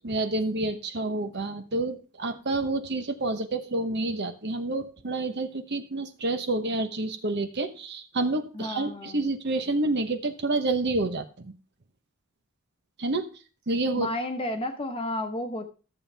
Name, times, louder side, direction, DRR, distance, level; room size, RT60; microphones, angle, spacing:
voice 1, 0.0-11.5 13.0-13.3 13.7-14.1, right 2 dB, 50° right, 8 dB, 1.0 m, -28 dB
voice 2, 8.5-9.2 14.0-15.7, left 1 dB, 25° left, 5 dB, 1.1 m, -32 dB
13.5 x 7.4 x 3.4 m, 0.36 s
head